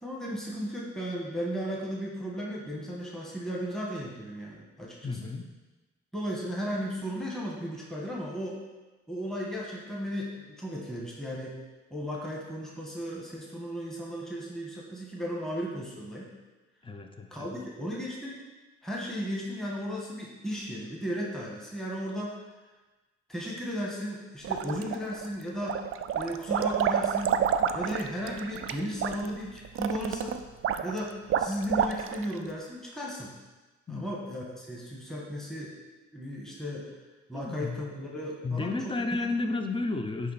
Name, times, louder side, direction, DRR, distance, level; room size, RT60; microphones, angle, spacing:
voice 1, 0.0-5.3 6.1-8.6 9.1-11.6 11.9-16.3 17.3-18.4 18.8-22.3 23.3-25.8 26.1-27.4 27.7-30.4 30.8-33.4 33.9-35.7 36.1-36.9 37.3-38.9, equal, ahead, -3 dB, 1.4 m, -35 dB
voice 2, 5.0-5.5 16.8-17.6 33.9-34.1 37.3-37.8 38.4-40.3, left 3 dB, 15° left, 6 dB, 0.6 m, -32 dB
sound 1, 24.4-25.3 25.6-32.3, right 8 dB, 45° right, 0.4 m, -29 dB
9.8 x 3.3 x 4.1 m, 1.2 s
cardioid pair, 90°, 30 cm